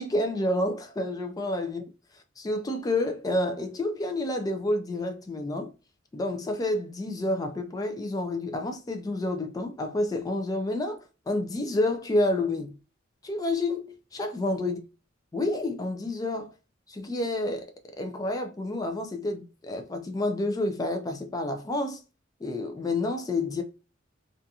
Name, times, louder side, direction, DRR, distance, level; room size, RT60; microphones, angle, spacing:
voice 1, 0.0-1.8 2.1-5.7 6.1-12.8 13.2-14.8 15.3-16.5 16.9-22.0 22.4-23.6, left 1 dB, 20° left, 0.3 m, -29 dB
2.4 x 2.3 x 2.6 m
head